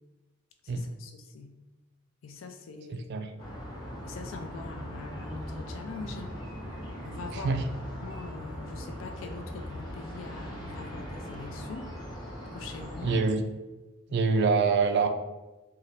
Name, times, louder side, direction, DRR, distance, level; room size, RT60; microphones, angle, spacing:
voice 1, 0.6-1.5 2.2-3.3 4.0-6.4 7.0-7.5 8.0-11.9 12.5-13.2 14.1-14.3, left 4 dB, 65° left, 5 dB, 0.4 m, -43 dB
voice 2, 2.9-3.3 7.3-7.6 13.0-13.4 14.1-15.1, right 4 dB, 55° right, 7 dB, 0.3 m, -25 dB
sound 1, 3.4-13.2, equal, 20° left, 0.7 m, -40 dB
2.6 x 2.3 x 3.1 m, 1.1 s
head